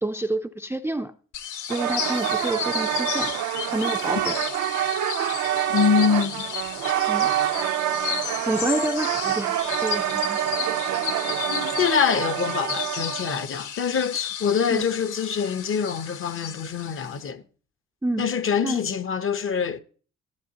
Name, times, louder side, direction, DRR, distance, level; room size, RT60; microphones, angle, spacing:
voice 1, 0.0-1.1 1.7-3.3 3.7-4.4 7.1-7.3 8.5-10.4 14.7-14.9 18.0-18.2 18.6-18.8, right 1 dB, 10° right, 0.4 m, -28 dB
sound 1, 1.3-17.3, left 9 dB, 85° left, 0.9 m, -33 dB
sound 2, 1.7-13.5, right 12 dB, 70° right, 0.6 m, -27 dB
voice 2, 5.7-6.5 11.5-17.4 18.2-19.8, left 7 dB, 45° left, 0.8 m, -25 dB
14.0 x 8.5 x 2.8 m
cardioid pair, 90°, 30 cm